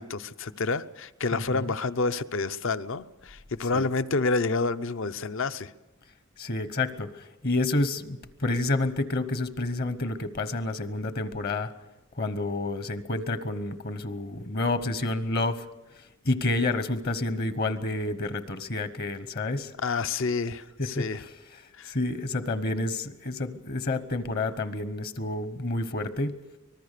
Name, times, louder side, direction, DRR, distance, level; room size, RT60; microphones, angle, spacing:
voice 1, 0.0-5.7 19.8-21.2 21.7-22.0, left 3 dB, 65° left, 13 dB, 0.7 m, -29 dB
voice 2, 1.3-1.7 3.6-3.9 6.4-11.7 12.2-15.6 16.2-19.7 20.8-26.4, left 2 dB, 50° left, 12 dB, 1.0 m, -29 dB
25.0 x 19.5 x 6.7 m, 1.1 s
head